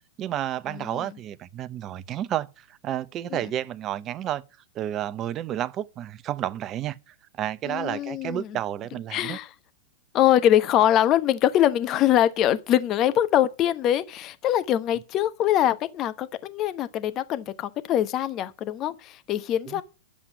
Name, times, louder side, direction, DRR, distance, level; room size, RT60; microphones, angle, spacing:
voice 1, 0.2-4.4 4.7-9.4 19.7-19.8, right 12 dB, 35° right, 0.8 m, -31 dB
voice 2, 0.7-1.1 3.3-3.4 7.7-8.6 9.1-9.5 10.1-19.8, left 11 dB, 35° left, 1.0 m, -23 dB
9.9 x 7.6 x 8.2 m
hypercardioid pair, 105°, 0 cm